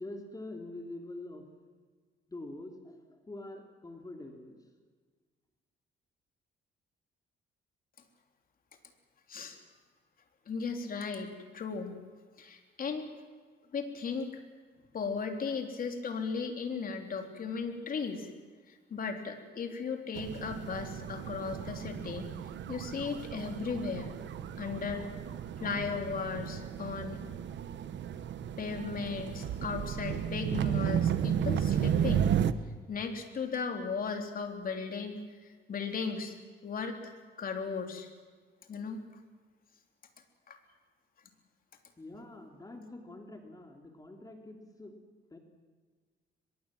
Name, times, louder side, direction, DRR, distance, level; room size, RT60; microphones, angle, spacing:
voice 1, 0.0-1.5 2.3-4.6 42.0-45.0 45.3-45.4, left 2 dB, 20° left, 3 dB, 3.1 m, -45 dB
voice 2, 10.5-12.0 12.4-13.1 13.7-14.3 14.9-18.3 18.7-22.3 22.7-24.2 24.6-25.1 25.6-27.2 28.6-32.4 32.9-36.4 36.6-37.1 37.4-38.1 38.7-39.0 40.5-40.6, left 5 dB, 50° left, 4 dB, 3.5 m, -36 dB
sound 1, 20.1-32.5, right 9 dB, 70° right, 1.1 m, -33 dB
24.0 x 22.0 x 7.6 m, 1.5 s
cardioid pair, 120°, 19 cm